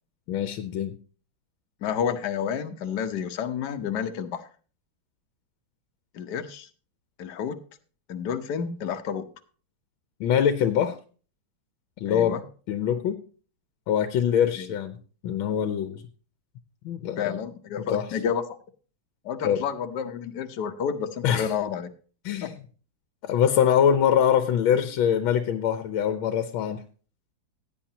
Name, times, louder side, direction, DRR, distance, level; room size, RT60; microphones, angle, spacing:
voice 1, 0.3-1.0 10.2-11.0 12.0-12.4 12.7-13.2 13.9-15.0 15.2-16.0 16.8-17.4 17.8-18.1 19.4-19.6 21.2-21.5 22.2-22.5 23.2-26.8, left 9 dB, 85° left, 10 dB, 1.6 m, -23 dB
voice 2, 1.8-4.4 6.1-6.7 7.2-7.6 8.1-9.3 12.1-12.4 14.6-14.7 17.2-18.4 19.2-21.9 22.4-22.5, left 7 dB, 60° left, 7 dB, 1.4 m, -30 dB
16.0 x 9.4 x 2.9 m, 0.39 s
omnidirectional pair, 2.2 m